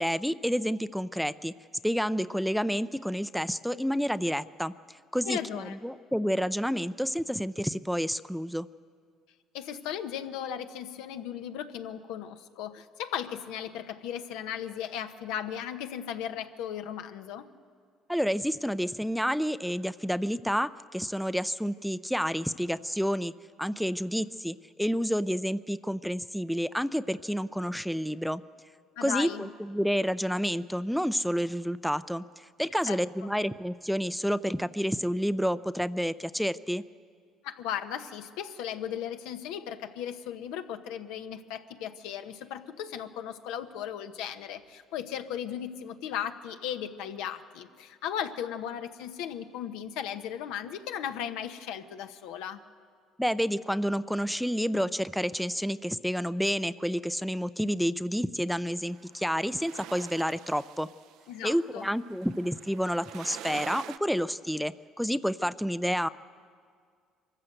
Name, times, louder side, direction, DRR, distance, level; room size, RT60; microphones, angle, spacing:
voice 1, 0.0-1.5 1.8-8.7 18.1-23.3 23.6-28.4 29.0-36.8 53.2-60.9 61.4-66.1, equal, ahead, 15 dB, 0.5 m, -29 dB
voice 2, 5.2-5.8 9.5-17.5 29.0-29.5 32.9-33.3 37.4-52.6 61.3-61.9, left 9 dB, 85° left, 8 dB, 1.0 m, -36 dB
sound 1, 58.9-64.0, right 11 dB, 75° right, 0.6 m, -45 dB
24.0 x 13.5 x 7.9 m, 2.1 s
supercardioid pair, 90°, 0 cm